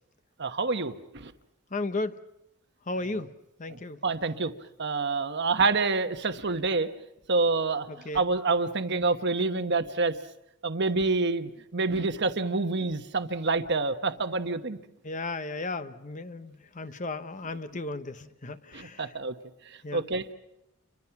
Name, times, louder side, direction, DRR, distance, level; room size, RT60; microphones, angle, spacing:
voice 1, 0.4-1.3 3.7-4.5 4.8-6.9 7.3-7.9 8.1-10.1 10.6-14.8 18.7-19.3 19.9-20.3, right 3 dB, 50° right, 8 dB, 1.2 m, -27 dB
voice 2, 1.7-2.2 2.9-3.3 3.6-4.0 7.9-8.2 15.0-19.1 19.8-20.1, left 2 dB, 35° left, 11 dB, 0.9 m, -35 dB
29.5 x 24.0 x 5.9 m, 0.86 s
head